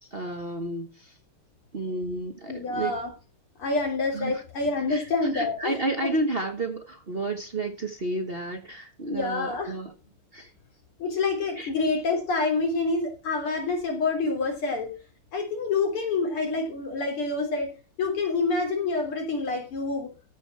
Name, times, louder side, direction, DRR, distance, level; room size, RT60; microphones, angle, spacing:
voice 1, 0.0-1.2 1.7-2.9 4.1-4.4 4.9-5.1 5.3-9.9 10.3-10.5 11.6-11.7, right 2 dB, 30° right, 1.2 m, -31 dB
voice 2, 2.5-3.1 3.6-6.1 9.1-9.7 11.0-14.9 15.3-17.7 18.0-20.1, left 3 dB, 80° left, 4.3 m, -27 dB
14.0 x 5.3 x 5.8 m
omnidirectional pair, 2.4 m